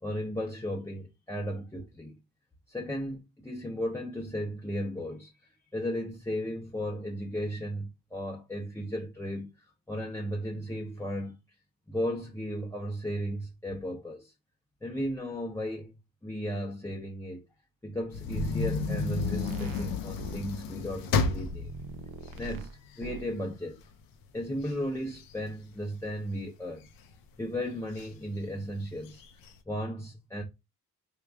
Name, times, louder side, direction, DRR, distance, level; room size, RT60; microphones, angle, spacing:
voice 1, 0.0-2.2 2.7-11.4 11.9-14.3 14.8-15.9 16.2-17.4 17.8-21.7 22.3-23.8 24.3-26.9 27.4-29.2 29.7-30.4, equal, 10° left, 0.7 m, -35 dB
sound 1, 18.1-23.3 23.8-23.9 24.2-26.3 26.8-27.4 28.0-28.1 28.4-28.5 28.9-29.5, left 5 dB, 90° left, 0.5 m, -32 dB
sound 2, 18.4-20.5 21.2-22.7 23.0-23.3, right 4 dB, 85° right, 0.5 m, -39 dB
3.3 x 2.2 x 3.5 m
cardioid pair, 70°, 34 cm